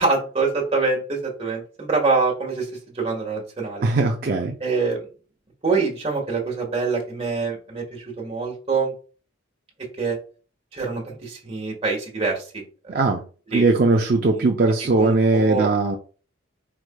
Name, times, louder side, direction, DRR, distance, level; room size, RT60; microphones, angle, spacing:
voice 1, 0.0-2.7 2.9-3.9 4.6-5.0 5.6-8.9 9.8-10.2 10.7-12.6 13.5-13.6 14.3-14.4 15.0-15.7, right 4 dB, 30° right, -1 dB, 1.5 m, -25 dB
voice 2, 3.8-4.5 12.9-13.2 13.5-16.0, right 3 dB, 45° right, 3 dB, 0.4 m, -19 dB
4.8 x 4.4 x 2.2 m, 0.39 s
head